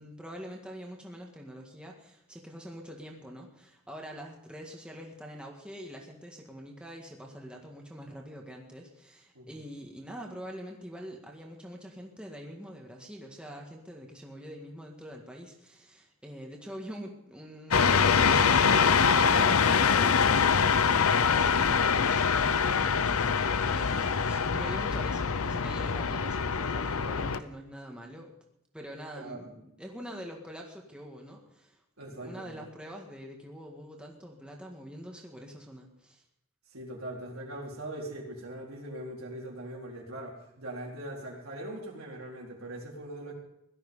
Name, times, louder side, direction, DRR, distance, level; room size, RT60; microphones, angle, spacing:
voice 1, 0.0-28.3 28.7-36.2, equal, 5° right, 0 dB, 1.8 m, -45 dB
sound 1, 17.7-27.4, left 6 dB, 85° left, 0.7 m, -24 dB
voice 2, 29.1-29.5 32.0-32.6 36.7-43.3, right 1 dB, 80° right, -2 dB, 4.2 m, -41 dB
17.5 x 12.5 x 5.5 m, 0.79 s
head